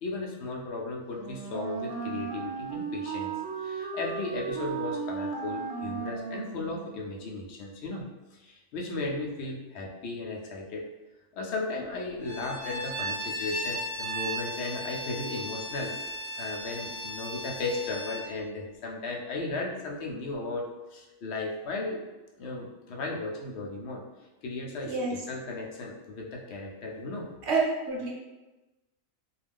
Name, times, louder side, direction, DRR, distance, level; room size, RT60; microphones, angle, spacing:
voice 1, 0.0-10.9 11.3-15.9 16.4-22.0 22.4-24.0 24.4-27.3, left 3 dB, 65° left, -1 dB, 0.7 m, -35 dB
Wind instrument woodwind instrument, 1.1-7.1, right 6 dB, 85° right, 1.0 m, -35 dB
Bowed string instrument, 12.2-18.3, equal, 10° left, 0.9 m, -36 dB
voice 2, 24.8-25.2 27.4-28.1, right 3 dB, 60° right, -2 dB, 0.8 m, -28 dB
2.4 x 2.2 x 3.4 m, 1.1 s
omnidirectional pair, 1.4 m